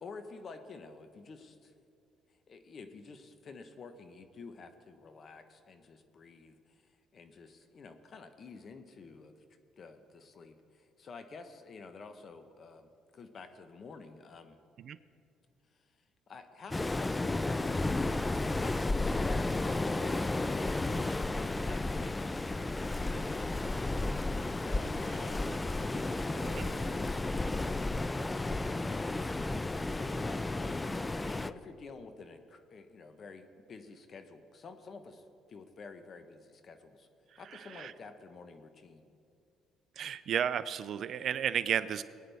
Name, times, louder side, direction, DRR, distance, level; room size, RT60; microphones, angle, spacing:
voice 1, 0.0-1.7 2.5-9.4 9.8-14.6 15.7-15.9 16.3-22.5 22.8-37.1 37.4-39.1, left 4 dB, 45° left, 8 dB, 1.0 m, -50 dB
Waves surf, 16.7-31.5, left 2 dB, 15° left, 0.3 m, -33 dB
Wind instrument woodwind instrument, 18.6-28.2, right 4 dB, 40° right, 3.3 m, -55 dB
voice 2, 37.3-37.9 40.0-42.0, right 9 dB, 60° right, 15 dB, 0.4 m, -33 dB
20.0 x 9.6 x 3.5 m, 2.4 s
cardioid pair, 95°, 0 cm